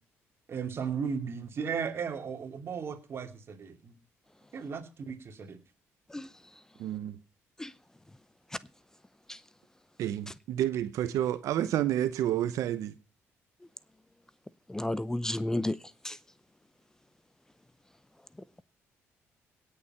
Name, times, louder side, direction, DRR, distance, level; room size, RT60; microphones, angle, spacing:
voice 1, 0.5-3.9 4.5-5.6, right 6 dB, 50° right, 2.7 m, -35 dB
voice 2, 6.8-7.2 10.0-13.0, right 12 dB, 75° right, 0.8 m, -30 dB
voice 3, 14.7-15.8 16.0-16.2, left 1 dB, 10° left, 0.6 m, -31 dB
18.0 x 6.9 x 5.5 m
cardioid pair, 90°, 5 cm